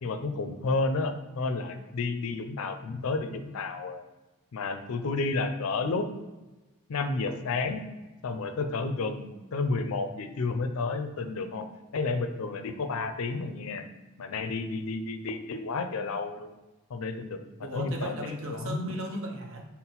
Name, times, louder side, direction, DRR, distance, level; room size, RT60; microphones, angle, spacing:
voice 1, 0.0-4.0 4.5-6.1 6.9-7.8 8.2-11.7 11.9-13.9 14.2-16.5 16.9-17.4 17.7-18.2 18.5-18.9, left 3 dB, 70° left, 8 dB, 0.4 m, -31 dB
voice 2, 17.6-19.7, right 1 dB, 60° right, 1 dB, 0.8 m, -36 dB
5.7 x 2.1 x 4.0 m, 1.1 s
head